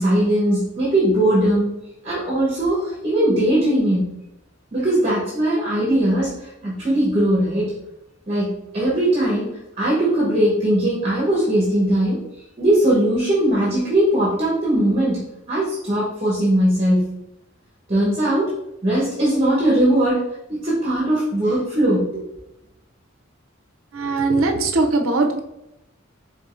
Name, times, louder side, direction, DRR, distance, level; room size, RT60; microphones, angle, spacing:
voice 1, 0.0-1.8 2.0-4.1 4.7-7.7 8.3-12.2 12.6-15.2 15.5-17.1 17.9-18.5 18.8-20.2 20.5-22.2, right 1 dB, 30° right, -6 dB, 1.1 m, -19 dB
voice 2, 23.9-25.4, right 3 dB, 90° right, 5 dB, 0.6 m, -20 dB
4.8 x 3.8 x 2.5 m, 0.90 s
head